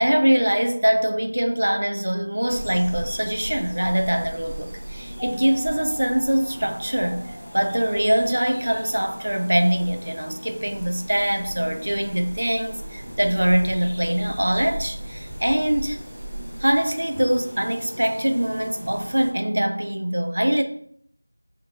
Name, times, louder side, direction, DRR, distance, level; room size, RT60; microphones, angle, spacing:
voice 1, 0.0-16.0 16.6-20.6, right 1 dB, 65° right, 0.3 m, -23 dB
sound 1, 2.5-19.3, right 1 dB, 15° left, 1.1 m, -38 dB
Mallet percussion, 5.2-7.6, equal, 5° right, 0.5 m, -42 dB
2.6 x 2.0 x 2.8 m
figure-of-eight pair, 175°, 0 cm